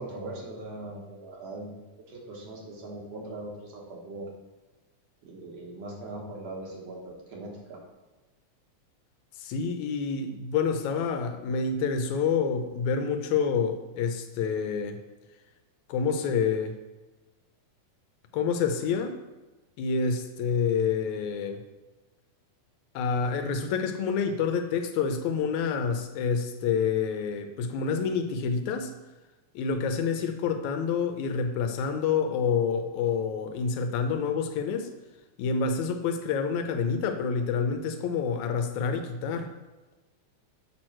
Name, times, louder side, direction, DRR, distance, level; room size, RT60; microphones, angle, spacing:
voice 1, 0.0-4.3 5.2-7.8, right 2 dB, 65° right, -2 dB, 2.4 m, -40 dB
voice 2, 9.4-15.0 15.9-16.8 18.3-19.2 19.8-21.6 23.0-28.9 29.6-34.9 35.4-39.5, left 6 dB, 80° left, 7 dB, 2.0 m, -28 dB
6.8 x 6.2 x 4.4 m, 1.1 s
omnidirectional pair, 3.4 m